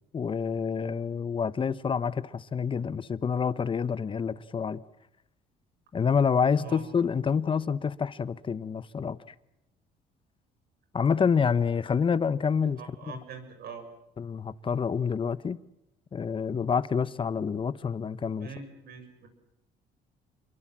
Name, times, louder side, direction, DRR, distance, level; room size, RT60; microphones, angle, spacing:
voice 1, 0.1-4.8 5.9-9.2 10.9-12.8 13.1-13.2 14.2-15.6 16.1-18.5, left 6 dB, 30° left, 1.0 m, -27 dB
voice 2, 6.5-6.9 12.8-13.9 18.4-19.3, right 5 dB, 65° right, 6.8 m, -43 dB
27.5 x 23.0 x 7.6 m
cardioid pair, 110°, 17 cm